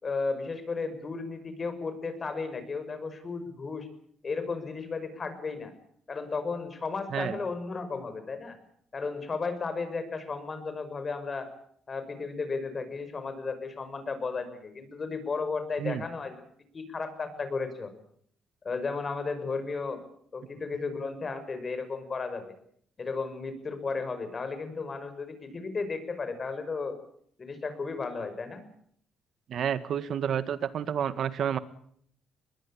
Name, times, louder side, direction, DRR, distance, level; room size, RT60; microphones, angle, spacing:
voice 1, 0.0-3.9 4.2-5.7 6.1-8.6 8.9-11.5 11.9-16.4 16.7-17.9 18.6-20.0 20.3-22.5 23.0-27.0 27.4-28.6, left 4 dB, 35° left, 10 dB, 5.7 m, -34 dB
voice 2, 29.5-31.6, right 8 dB, 65° right, 14 dB, 1.7 m, -30 dB
21.5 x 21.5 x 8.6 m, 0.66 s
cardioid pair, 90°, 0 cm